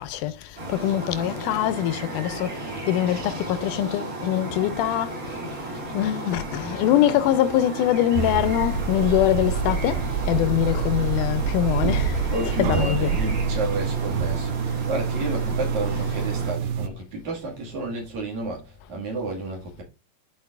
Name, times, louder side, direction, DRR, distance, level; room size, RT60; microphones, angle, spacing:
voice 1, 0.0-5.4 5.9-13.1, left 12 dB, 85° left, 2.1 m, -24 dB
sound 1, 0.6-16.5, right 2 dB, 30° right, 2.0 m, -34 dB
sound 2, 8.2-16.9, right 6 dB, 80° right, 1.8 m, -26 dB
voice 2, 12.3-19.8, right 2 dB, 65° right, 3.1 m, -31 dB
12.5 x 4.7 x 2.4 m
omnidirectional pair, 3.8 m